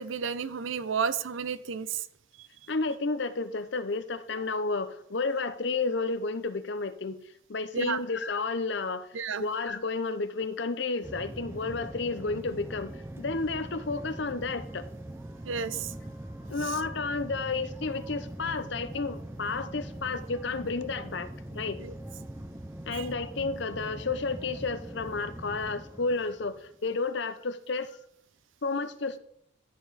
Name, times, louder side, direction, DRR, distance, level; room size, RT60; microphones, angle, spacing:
voice 1, 0.0-2.0 7.7-8.0 9.1-9.4 15.4-15.9 21.8-21.9 22.9-23.1, right 6 dB, 70° right, 15 dB, 0.6 m, -32 dB
voice 2, 2.7-7.2 7.5-14.9 16.5-21.8 22.9-28.0 28.6-29.2, left 3 dB, 55° left, 12 dB, 0.7 m, -31 dB
sound 1, 11.0-26.8, right 1 dB, 10° right, 0.5 m, -42 dB
13.0 x 7.0 x 4.1 m, 0.72 s
head